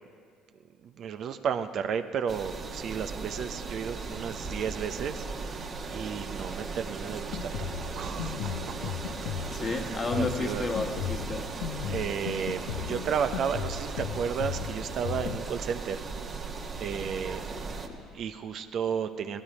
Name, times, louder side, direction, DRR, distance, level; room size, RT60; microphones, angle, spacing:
voice 1, 0.8-8.9 9.6-10.7 11.8-16.0 16.8-17.4 18.1-19.4, right 7 dB, 55° right, 9 dB, 0.6 m, -33 dB
sound 1, 2.3-17.9, right 4 dB, 40° right, 1.4 m, -37 dB
Drum kit, 7.1-15.4, left 11 dB, 75° left, 0.4 m, -37 dB
voice 2, 9.5-11.6 17.7-18.0, left 3 dB, 35° left, 5 dB, 1.3 m, -32 dB
16.5 x 12.5 x 5.1 m, 2.2 s
hypercardioid pair, 65°, 0 cm